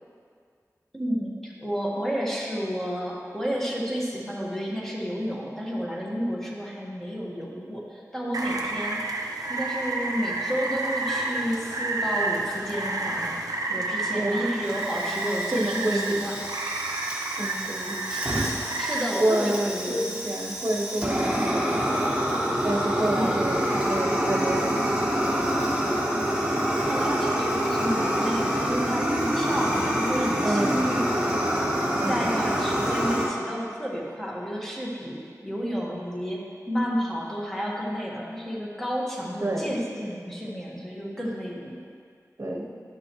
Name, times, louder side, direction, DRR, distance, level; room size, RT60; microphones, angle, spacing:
voice 1, 0.9-9.0 9.5-13.4 13.7-16.4 18.1-18.2 18.8-20.0 23.2-23.4 26.8-31.0 32.1-41.8, equal, 5° left, -4 dB, 1.7 m, -31 dB
Rain, 8.3-19.0, right 2 dB, 80° right, 0.7 m, -30 dB
voice 2, 14.1-14.5 15.5-16.2 17.4-18.0 19.2-22.0 22.6-25.2 30.4-31.0 32.0-32.4 39.4-39.8 42.4-42.7, right 1 dB, 50° right, 0 dB, 1.1 m, -29 dB
Fire, 14.6-33.2, equal, 15° right, 1.6 m, -27 dB
11.5 x 6.1 x 3.2 m, 2.1 s
wide cardioid pair, 60°, 6 cm